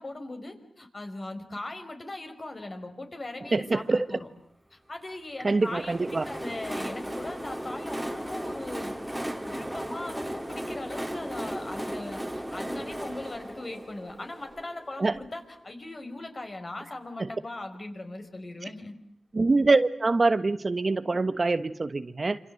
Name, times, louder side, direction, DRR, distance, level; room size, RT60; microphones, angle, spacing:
voice 1, 0.0-4.3 4.7-9.0 9.3-19.0, left 2 dB, 35° left, 6 dB, 5.1 m, -39 dB
voice 2, 3.5-4.1 5.4-6.3 15.0-15.1 17.2-17.3 19.3-22.4, right 3 dB, 40° right, 12 dB, 1.2 m, -24 dB
Train, 5.6-15.3, equal, 5° right, 3.1 m, -36 dB
27.5 x 27.0 x 7.7 m, 0.69 s
wide cardioid pair, 75°, 0 cm